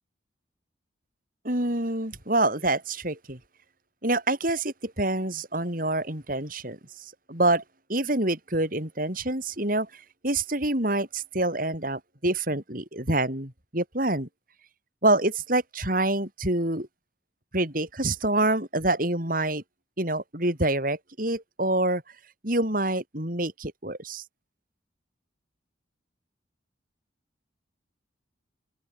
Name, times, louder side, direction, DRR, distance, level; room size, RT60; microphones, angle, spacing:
voice 1, 1.4-3.4 4.0-7.6 7.9-14.3 15.0-16.9 17.5-19.6 20.0-22.0 22.4-24.2, right 2 dB, 45° right, 5.7 m, -26 dB
head